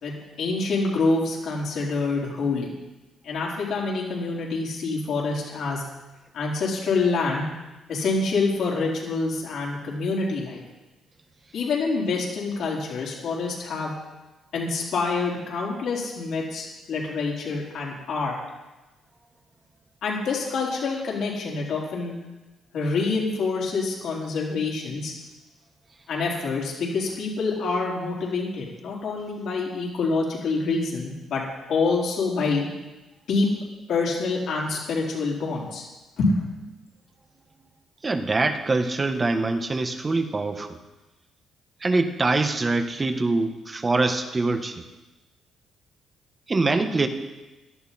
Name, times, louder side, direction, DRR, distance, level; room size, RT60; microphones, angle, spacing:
voice 1, 0.0-2.7 3.2-5.8 6.3-7.5 7.9-10.6 11.5-13.9 14.5-18.4 20.0-22.2 22.7-25.1 26.1-31.4 31.7-32.7 33.3-33.5 33.9-35.8 36.2-36.4, left 3 dB, 70° left, -3 dB, 4.0 m, -26 dB
voice 2, 38.0-40.7 41.8-44.8 46.5-47.1, right 3 dB, 30° right, 7 dB, 1.3 m, -24 dB
17.0 x 12.0 x 4.3 m, 1.1 s
cardioid pair, 90°, 0 cm